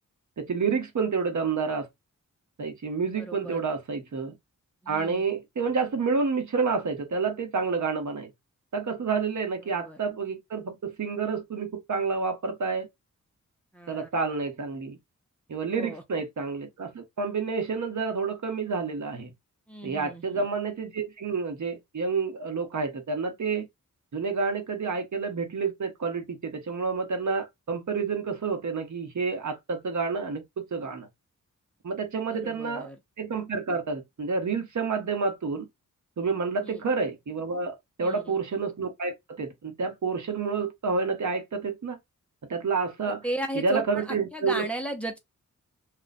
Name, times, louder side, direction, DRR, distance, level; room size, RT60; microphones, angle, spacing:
voice 1, 0.4-1.9 2.6-4.3 4.9-8.3 8.7-12.9 13.9-15.0 15.5-19.3 19.8-23.7 24.1-31.1 31.8-32.9 33.2-35.7 36.2-42.0 42.5-43.2 43.5-44.6, right 4 dB, 60° right, 1.1 m, -29 dB
voice 2, 3.2-3.6 4.8-5.2 9.7-10.0 13.7-14.1 15.7-16.0 19.7-20.5 32.3-33.0 36.6-36.8 38.0-38.3 43.1-45.2, right 1 dB, 5° left, 0.8 m, -35 dB
2.5 x 2.4 x 4.0 m
cardioid pair, 65°, 32 cm